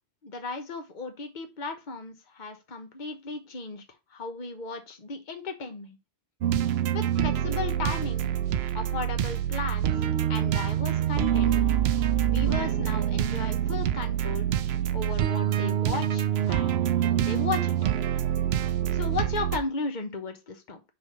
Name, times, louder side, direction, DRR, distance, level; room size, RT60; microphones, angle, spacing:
voice 1, 0.2-3.8 4.1-6.0 6.9-8.3 8.7-11.6 12.3-14.4 14.9-17.7 18.9-20.8, left 4 dB, 50° left, 5 dB, 1.2 m, -35 dB
sound 1, 6.4-19.6, right 11 dB, 80° right, 0.9 m, -26 dB
6.2 x 3.2 x 5.4 m, 0.24 s
omnidirectional pair, 1.0 m